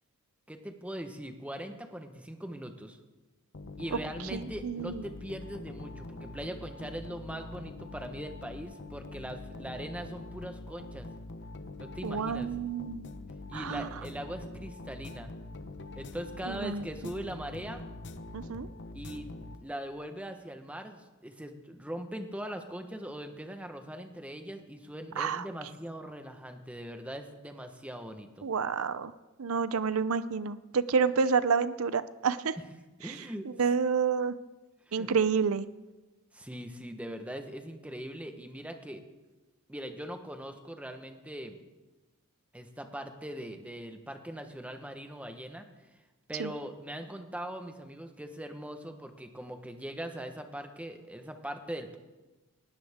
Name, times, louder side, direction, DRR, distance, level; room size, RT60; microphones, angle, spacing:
voice 1, 0.5-3.0 3.8-11.1 11.8-12.5 13.5-15.3 15.9-17.8 18.9-28.5 33.0-33.5 34.9-35.1 36.3-39.0 39.7-41.6 42.5-45.6 46.3-52.0, right 1 dB, 5° right, 6 dB, 1.2 m, -41 dB
sound 1, 3.5-20.0, left 2 dB, 50° left, 0.9 m, -44 dB
voice 2, 4.3-4.9 12.0-13.1 13.5-13.9 16.5-16.9 18.3-18.7 25.2-25.4 28.4-29.1 29.4-32.6 33.1-33.2 33.6-34.4 34.9-35.6 46.4-46.5, right 5 dB, 65° right, 15 dB, 0.6 m, -29 dB
19.5 x 17.0 x 3.6 m, 1.1 s
head